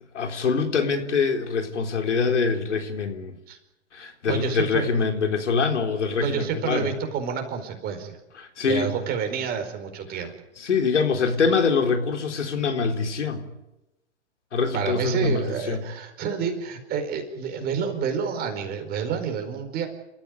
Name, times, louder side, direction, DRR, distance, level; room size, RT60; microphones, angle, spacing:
voice 1, 0.1-3.4 3.9-6.9 8.4-8.9 10.6-13.5 14.5-15.8, left 5 dB, 75° left, 4.0 m, -24 dB
voice 2, 4.3-5.0 6.2-8.2 8.6-10.3 14.7-19.9, right 6 dB, 25° right, 4.7 m, -29 dB
29.0 x 14.5 x 9.5 m
hypercardioid pair, 125°, 36 cm